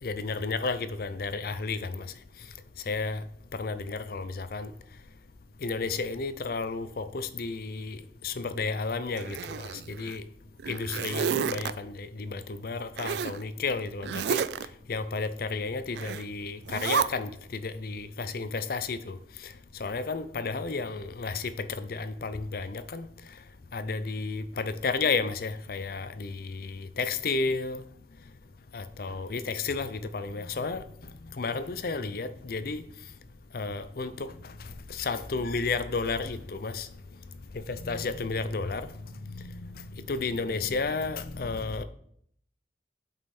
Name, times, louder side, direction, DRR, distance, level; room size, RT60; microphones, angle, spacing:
voice 1, 0.0-2.1 2.9-3.2 3.6-4.7 5.6-9.7 10.0-10.2 10.7-14.4 14.9-19.2 19.8-21.5 21.8-23.1 23.7-27.8 28.7-30.8 31.4-32.8 33.5-34.3 34.9-36.9 37.7-38.8 39.3-41.8, left 4 dB, 55° left, 0.5 m, -32 dB
Zipper (clothing), 9.2-10.2 10.6-11.7 13.0-13.4 14.0-14.7 16.0-16.3 16.7-17.1, right 7 dB, 70° right, 0.3 m, -30 dB
7.9 x 5.3 x 4.3 m
head